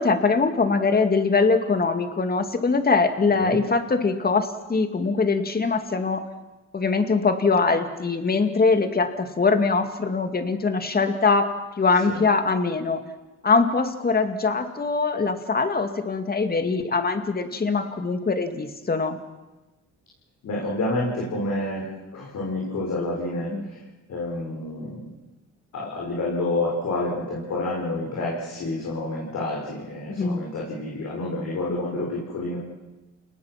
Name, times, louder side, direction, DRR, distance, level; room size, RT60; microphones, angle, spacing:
voice 1, 0.0-6.2 6.7-11.5 11.8-13.0 13.4-19.2 23.5-23.6 30.1-30.4, left 4 dB, 30° left, 7 dB, 2.3 m, -22 dB
voice 2, 20.4-23.8 24.1-25.0 25.7-32.6, left 2 dB, 65° left, -4 dB, 5.8 m, -29 dB
29.5 x 19.5 x 6.0 m, 1.1 s
cardioid pair, 90°, 30 cm